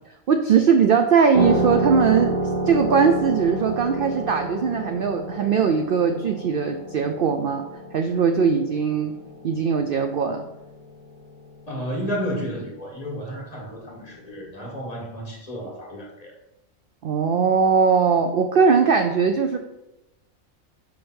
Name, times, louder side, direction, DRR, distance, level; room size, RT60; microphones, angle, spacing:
voice 1, 0.3-7.6 7.9-9.1 9.4-10.4 17.0-19.6, right 6 dB, 65° right, 6 dB, 0.5 m, -20 dB
sound 1, 1.3-10.5, right 1 dB, 45° right, 1.8 m, -29 dB
voice 2, 11.7-16.3, equal, 30° left, -2 dB, 1.5 m, -32 dB
5.7 x 5.3 x 4.3 m, 0.92 s
omnidirectional pair, 1.4 m